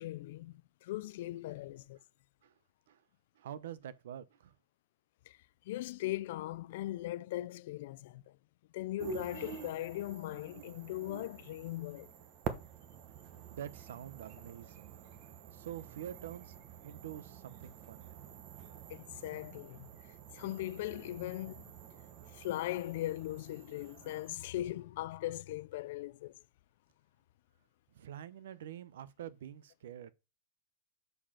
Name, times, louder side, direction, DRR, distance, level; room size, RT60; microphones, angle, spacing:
voice 1, 0.0-2.0 5.3-5.4 5.7-8.4 8.7-12.1 18.9-19.9 20.3-21.7 22.3-26.3, left 15 dB, 60° left, 0.3 m, -39 dB
voice 2, 3.3-4.5 13.5-14.9 15.5-18.2 27.9-30.1, right 10 dB, 85° right, 0.8 m, -46 dB
sound 1, 9.0-24.3, right 7 dB, 35° right, 1.0 m, -48 dB
6.7 x 5.1 x 5.7 m
supercardioid pair, 165°, 0 cm